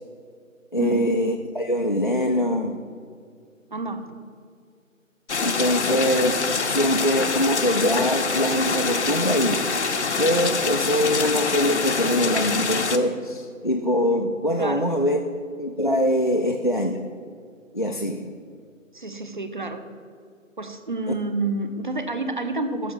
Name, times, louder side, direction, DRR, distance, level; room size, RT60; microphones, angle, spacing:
voice 1, 0.7-2.9 5.4-9.6 10.2-15.2 15.6-17.1 17.7-18.3 21.1-21.2, equal, 40° left, 5 dB, 0.4 m, -23 dB
voice 2, 3.7-4.0 14.6-14.9 18.9-19.9 20.6-22.9, right 2 dB, 35° right, 9 dB, 0.7 m, -29 dB
sound 1, 5.3-13.0, left 4 dB, 55° left, 0.8 m, -25 dB
Alarm, 8.3-11.7 12.0-12.4, right 3 dB, 75° right, 1.6 m, -41 dB
13.5 x 4.9 x 7.0 m, 2.2 s
figure-of-eight pair, 165°, 41 cm